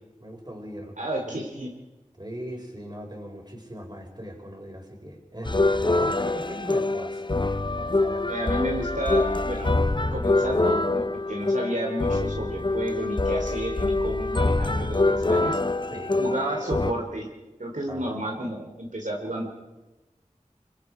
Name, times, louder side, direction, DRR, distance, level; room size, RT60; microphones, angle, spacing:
voice 1, 0.2-1.0 1.2-1.4 2.2-7.2 7.8-8.3 15.9-16.2 17.9-18.2, equal, 35° right, 1 dB, 4.9 m, -39 dB
voice 2, 1.0-1.7 8.3-9.8 10.1-15.6 16.2-17.3 17.6-19.5, right 1 dB, 75° right, 0 dB, 3.0 m, -31 dB
sound 1, 5.5-16.9, left 2 dB, 35° left, 0.7 m, -25 dB
25.5 x 23.5 x 4.8 m, 1.1 s
wide cardioid pair, 45°, 13 cm